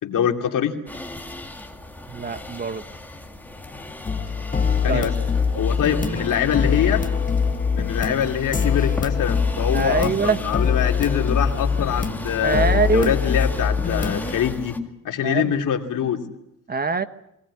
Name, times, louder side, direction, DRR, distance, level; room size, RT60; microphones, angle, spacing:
voice 1, 0.0-0.8 4.8-5.1 5.5-7.0 7.7-14.8 15.0-16.2, left 9 dB, 70° left, 4 dB, 2.7 m, -24 dB
sound 1, 0.9-14.8, left 1 dB, 5° left, 2.4 m, -38 dB
voice 2, 2.1-2.8 4.9-5.1 9.7-10.4 12.4-13.1 15.2-15.5 16.7-17.0, right 4 dB, 30° right, 11 dB, 1.2 m, -23 dB
sound 2, 4.1-14.5, left 6 dB, 25° left, 1.5 m, -23 dB
22.5 x 18.5 x 9.6 m, 0.82 s
cardioid pair, 120°, 33 cm